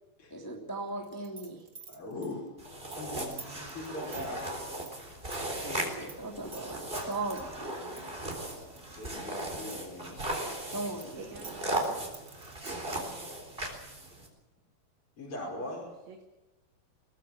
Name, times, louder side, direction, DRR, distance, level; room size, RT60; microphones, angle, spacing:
voice 1, 0.3-1.6 5.6-7.7 10.7-11.3, right 2 dB, 5° left, 2 dB, 2.2 m, -38 dB
sound 1, 1.0-6.2 6.4-7.4 8.0-9.7 10.1-12.9, right 5 dB, 30° right, 2.2 m, -49 dB
voice 2, 1.9-2.4 3.0-4.6 5.7-6.0 8.5-10.4 15.2-15.9, left 2 dB, 35° left, -4 dB, 5.8 m, -41 dB
sound 2, 2.6-14.3, right 1 dB, 15° right, 3.7 m, -37 dB
voice 3, 11.2-12.3 12.6-13.7 15.8-16.2, right 5 dB, 60° right, 5 dB, 2.4 m, -51 dB
22.0 x 18.0 x 7.3 m, 1.1 s
omnidirectional pair, 4.2 m